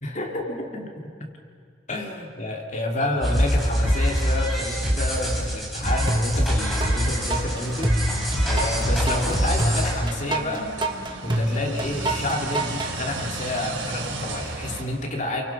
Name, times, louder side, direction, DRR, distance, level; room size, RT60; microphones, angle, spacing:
voice 1, 0.0-0.9 1.2-1.3 1.9-8.1 8.5-10.7 11.2-15.4, left 1 dB, 40° left, 1 dB, 3.0 m, -29 dB
sound 1, 3.2-9.9, equal, ahead, 5.6 m, -24 dB
sound 2, 6.1-6.9 7.3-12.9, right 1 dB, 25° right, 1.3 m, -26 dB
sound 3, 6.6-14.8, right 2 dB, 80° right, 4.1 m, -35 dB
29.0 x 23.5 x 6.2 m, 2.2 s
head